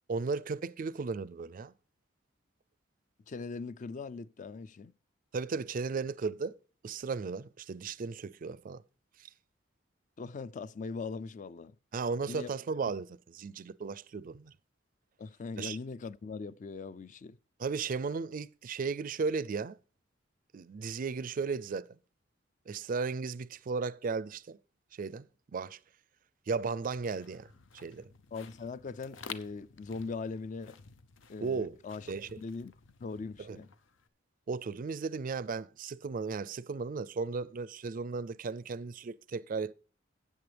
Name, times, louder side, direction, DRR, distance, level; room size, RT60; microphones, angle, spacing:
voice 1, 0.1-1.7 5.3-6.5 6.8-8.8 11.9-13.1 13.3-14.5 15.6-15.8 17.6-19.8 20.5-21.9 22.7-24.6 24.9-25.3 25.5-25.8 26.5-27.5 27.8-28.1 31.4-31.8 32.1-32.4 33.4-33.6 34.5-39.7, right 4 dB, 45° right, 0.4 m, -35 dB
voice 2, 3.3-4.9 10.2-11.8 12.3-12.5 15.2-17.4 28.3-30.8 31.3-32.7 33.0-33.7, left 4 dB, 40° left, 0.4 m, -40 dB
sound 1, 26.8-34.1, left 6 dB, 85° left, 0.7 m, -52 dB
13.0 x 8.4 x 3.3 m
head